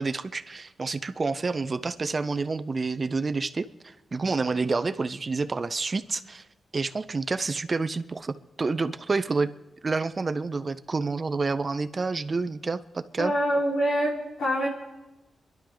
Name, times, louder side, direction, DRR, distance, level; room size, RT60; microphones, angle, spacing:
voice 1, 0.0-6.5 6.7-9.5 9.8-13.4, right 4 dB, 35° right, 12 dB, 0.6 m, -28 dB
voice 2, 13.2-14.7, equal, 85° left, -4 dB, 4.6 m, -25 dB
29.5 x 11.5 x 3.9 m, 1.0 s
wide cardioid pair, 110°, 0 cm